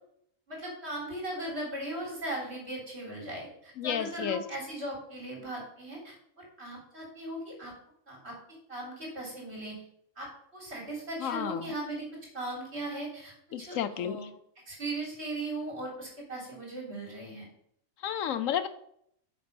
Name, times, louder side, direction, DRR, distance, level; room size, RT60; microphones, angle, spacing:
voice 1, 0.5-7.7 8.1-8.3 8.7-9.8 10.2-12.1 12.3-14.3 14.7-17.5, right 1 dB, 50° right, -2 dB, 4.0 m, -38 dB
voice 2, 3.8-4.4 11.2-11.7 13.5-14.2 18.0-18.7, left 9 dB, 70° left, 13 dB, 1.0 m, -31 dB
8.1 x 6.8 x 5.3 m, 0.70 s
omnidirectional pair, 1.5 m